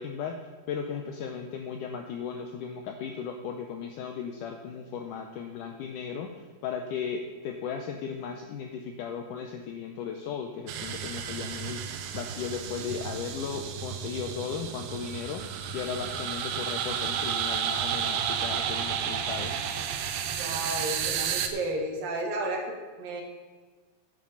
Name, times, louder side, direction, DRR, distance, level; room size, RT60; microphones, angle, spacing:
voice 1, 0.0-15.5 15.7-19.6, left 6 dB, 90° left, 4 dB, 1.8 m, -36 dB
sound 1, 10.7-21.5, right 8 dB, 90° right, 1.7 m, -32 dB
voice 2, 20.4-23.2, right 1 dB, 70° right, 1 dB, 3.1 m, -32 dB
10.5 x 7.8 x 5.5 m, 1.4 s
omnidirectional pair, 4.5 m